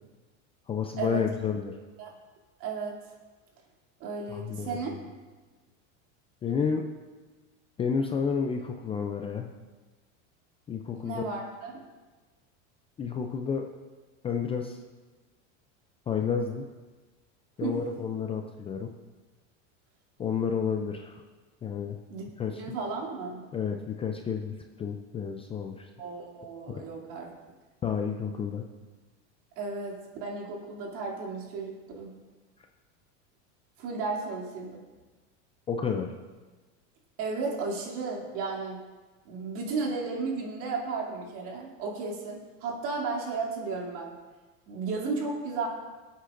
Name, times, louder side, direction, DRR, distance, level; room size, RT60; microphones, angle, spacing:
voice 1, 0.7-1.8 4.3-5.0 6.4-6.9 7.8-9.5 10.7-11.2 13.0-13.7 14.2-14.8 16.1-16.6 17.6-18.9 20.2-21.2 21.6-22.0 22.4-22.6 23.5-25.9 26.7-26.8 27.8-28.7 35.7-36.1, left 6 dB, 15° left, 4 dB, 0.4 m, -31 dB
voice 2, 2.6-2.9 4.0-5.0 11.0-11.8 17.6-17.8 22.1-23.4 26.0-27.3 29.6-32.1 33.8-34.8 37.2-38.8 39.2-44.1 44.7-45.7, right 4 dB, 60° right, -1 dB, 2.8 m, -34 dB
23.0 x 8.3 x 2.6 m, 1.3 s
supercardioid pair, 140°, 36 cm